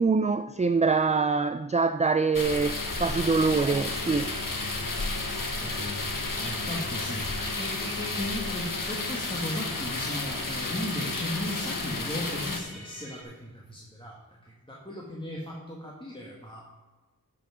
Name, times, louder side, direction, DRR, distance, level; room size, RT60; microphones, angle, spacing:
voice 1, 0.0-4.3, right 4 dB, 20° right, 10 dB, 0.3 m, -24 dB
sound 1, 2.3-12.6, left 3 dB, 60° left, 1.3 m, -32 dB
Musical instrument, 3.0-13.2, equal, 90° left, 2.0 m, -47 dB
voice 2, 5.3-14.2 14.4-16.7, left 1 dB, 15° left, -4 dB, 1.7 m, -37 dB
11.5 x 5.8 x 5.0 m, 1.2 s
wide cardioid pair, 50°, 37 cm